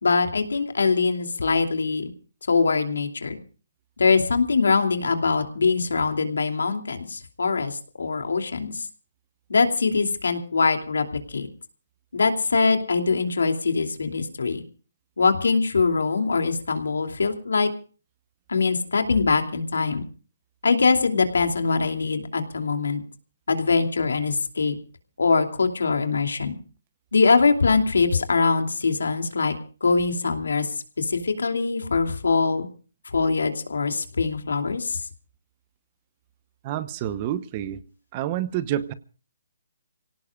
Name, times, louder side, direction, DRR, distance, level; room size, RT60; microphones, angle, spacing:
voice 1, 0.0-2.1 2.5-3.4 4.0-8.9 9.5-11.5 12.1-14.6 15.2-17.7 18.5-20.0 20.6-23.0 23.5-24.8 25.2-26.6 27.1-29.5 29.8-32.7 33.1-35.0, left 4 dB, 85° left, 5 dB, 2.8 m, -23 dB
voice 2, 36.6-37.8 38.1-38.9, right 11 dB, 25° right, 15 dB, 0.9 m, -28 dB
28.0 x 17.5 x 2.4 m, 0.38 s
hypercardioid pair, 160°, 0 cm